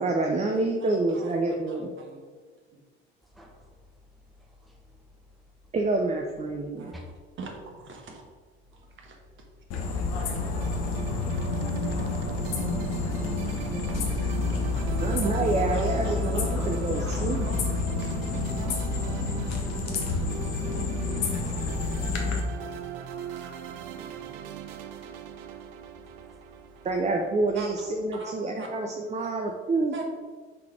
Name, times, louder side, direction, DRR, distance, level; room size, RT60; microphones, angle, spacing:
voice 1, 0.0-1.9 5.7-7.0 15.0-17.5 26.8-29.9, right 3 dB, 20° right, 0.6 m, -27 dB
voice 2, 0.5-2.3 6.8-7.0 7.4-8.3 8.7-9.2 13.4-14.0 14.7-15.0 15.7-16.4 16.9-17.6 18.0-18.5 20.7-21.2 23.3-23.6 27.5-27.7 28.1-28.7 29.2-29.3 29.9-30.0, right 4 dB, 35° right, 1.4 m, -44 dB
voice 3, 3.2-3.9 4.3-5.1 6.9-7.1 8.7-8.8 22.4-22.8 23.1-23.3 24.0-26.9, left 2 dB, ahead, 1.0 m, -54 dB
sound 1, 9.7-22.4, left 3 dB, 50° left, 1.1 m, -29 dB
sound 2, 10.6-28.0, right 9 dB, 65° right, 0.6 m, -40 dB
5.7 x 4.0 x 4.8 m
figure-of-eight pair, 60°, 32 cm